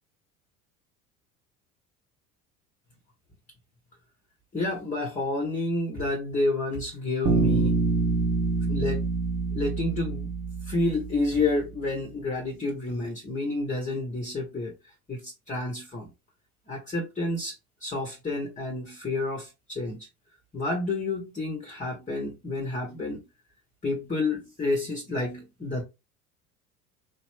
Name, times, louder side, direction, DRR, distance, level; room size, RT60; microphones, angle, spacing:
voice 1, 4.5-7.8 8.7-9.1 9.5-10.3 10.6-16.1 16.7-20.1 20.5-23.2 23.8-25.8, left 2 dB, 15° left, 1.2 m, -30 dB
Bass guitar, 7.2-11.3, right 3 dB, 45° right, 1.5 m, -26 dB
4.2 x 3.1 x 3.2 m
figure-of-eight pair, 70°, 43 cm